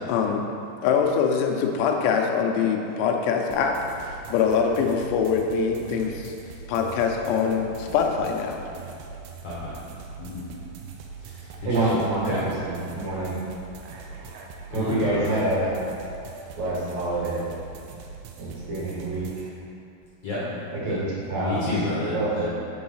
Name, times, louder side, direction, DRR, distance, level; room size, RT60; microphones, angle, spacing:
voice 1, 0.1-0.4 0.8-3.8 4.3-6.3 6.7-8.6, left 6 dB, 85° left, 2 dB, 2.9 m, -23 dB
sound 1, 3.5-19.5, right 5 dB, 80° right, 2.3 m, -41 dB
voice 2, 9.4-9.7 10.2-10.4 11.2-11.5 12.2-12.4 14.7-15.3 20.2-20.4 20.9-21.0 21.4-22.5, left 2 dB, 70° left, -8 dB, 1.5 m, -30 dB
voice 3, 11.6-13.4 14.7-15.8 16.5-17.5 18.4-19.5 20.7-21.7 22.1-22.4, right 2 dB, 60° right, -8 dB, 3.1 m, -27 dB
6.9 x 4.7 x 5.6 m, 2.5 s
omnidirectional pair, 4.8 m